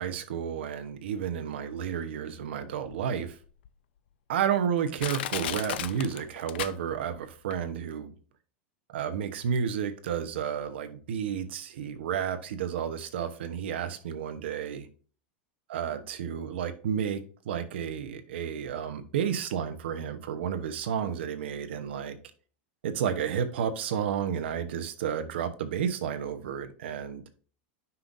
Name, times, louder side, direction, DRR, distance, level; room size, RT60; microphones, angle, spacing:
voice 1, 0.0-3.4 4.3-8.1 8.9-14.9 15.7-22.2 22.8-27.2, right 8 dB, 90° right, 1.0 m, -31 dB
Crushing, 2.9-3.0 3.6-3.7 4.4-4.5 5.0-7.2 7.5-7.6, left 12 dB, 70° left, 0.6 m, -34 dB
9.7 x 5.7 x 2.7 m
supercardioid pair, 180°, 6 cm